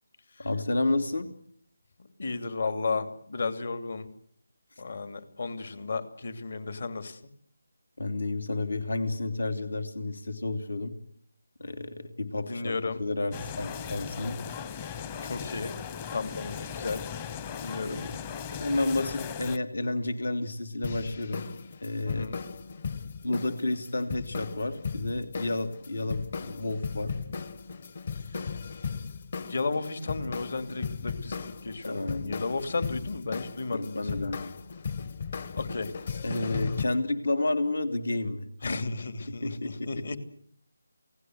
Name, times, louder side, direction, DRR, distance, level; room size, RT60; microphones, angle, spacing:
voice 1, 0.4-1.3 8.0-10.9 11.6-14.4 17.9-18.1 18.5-21.5 21.8-22.3 23.2-27.1 31.8-32.4 33.7-34.5 36.2-38.5 39.3-40.0, left 2 dB, 75° left, 8 dB, 3.1 m, -31 dB
voice 2, 2.2-4.1 4.8-7.2 12.5-13.0 15.2-15.8 16.1-17.0 17.6-18.0 22.0-22.4 28.1-28.6 29.4-34.3 35.5-35.9 38.6-40.2, left 3 dB, 55° left, 9 dB, 2.8 m, -34 dB
sound 1, 13.3-19.6, left 7 dB, 20° left, 0.9 m, -38 dB
sound 2, 20.8-36.8, left 5 dB, 40° left, 1.2 m, -37 dB
28.0 x 18.5 x 8.0 m, 0.63 s
figure-of-eight pair, 170°, 0 cm